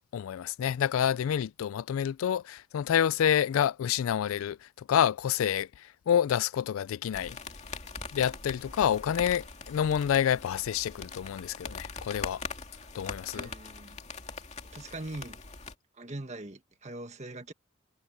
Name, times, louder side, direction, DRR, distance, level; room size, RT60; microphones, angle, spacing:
voice 1, 0.0-7.4 8.1-12.4 12.9-13.5, left 9 dB, 80° left, 0.3 m, -28 dB
sound 1, 7.1-15.7, left 4 dB, 30° left, 2.5 m, -42 dB
voice 2, 13.3-14.0 14.7-15.4 16.0-17.5, right 2 dB, 35° right, 1.6 m, -41 dB
head